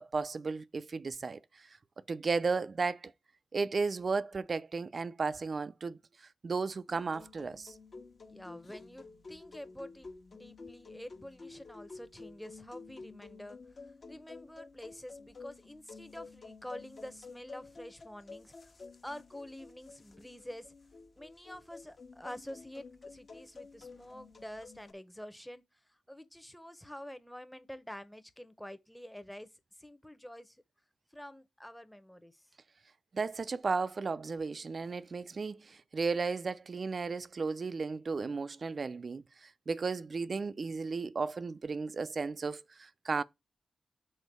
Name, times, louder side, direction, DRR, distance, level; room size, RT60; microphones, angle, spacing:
voice 1, 0.0-1.4 2.1-3.1 3.5-6.0 6.4-7.7 33.1-43.2, right 4 dB, 45° right, 0.5 m, -34 dB
sound 1, 6.9-24.9, left 4 dB, 45° left, 1.2 m, -51 dB
voice 2, 8.2-13.6 14.1-18.7 19.0-20.7 21.2-25.6 25.9-29.5 29.8-30.6 31.1-32.5, left 1 dB, 5° left, 0.9 m, -48 dB
6.4 x 3.9 x 5.3 m
cardioid pair, 80°, 0 cm